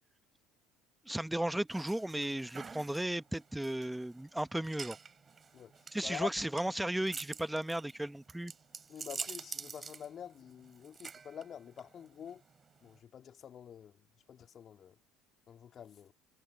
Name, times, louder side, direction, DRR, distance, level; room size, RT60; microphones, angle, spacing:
voice 1, 1.0-5.0 5.9-8.5, right 1 dB, 5° right, 1.5 m, -35 dB
sound 1, 1.7-13.0, right 5 dB, 30° right, 6.2 m, -47 dB
voice 2, 8.9-12.4 12.8-13.9 14.3-14.9 15.5-16.1, left 8 dB, 45° left, 2.8 m, -46 dB
hypercardioid pair, 65°, 0 cm